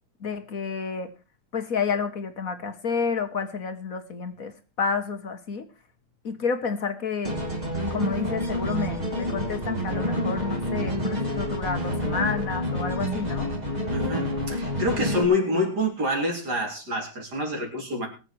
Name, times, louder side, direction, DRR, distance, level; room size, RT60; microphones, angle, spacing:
voice 1, 0.2-1.1 1.5-4.5 4.8-5.7 6.2-7.4 7.9-13.5, left 5 dB, 50° left, 8 dB, 1.5 m, -30 dB
sound 1, 7.2-15.2, equal, 20° right, 2.8 m, -28 dB
voice 2, 13.9-18.1, left 1 dB, 55° right, 2 dB, 4.3 m, -27 dB
22.0 x 7.5 x 4.6 m, 0.32 s
omnidirectional pair, 2.1 m